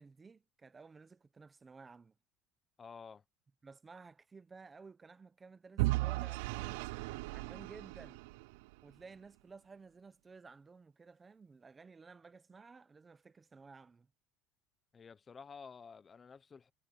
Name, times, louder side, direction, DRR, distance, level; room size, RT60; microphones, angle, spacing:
voice 1, 0.0-2.1 3.6-8.2 8.8-14.1, right 4 dB, 10° right, 0.9 m, -55 dB
voice 2, 2.8-3.2 14.9-16.7, left 5 dB, 15° left, 0.7 m, -52 dB
Vehicle / Engine, 5.8-8.8, right 22 dB, 80° right, 0.4 m, -36 dB
cardioid pair, 180°, 0 cm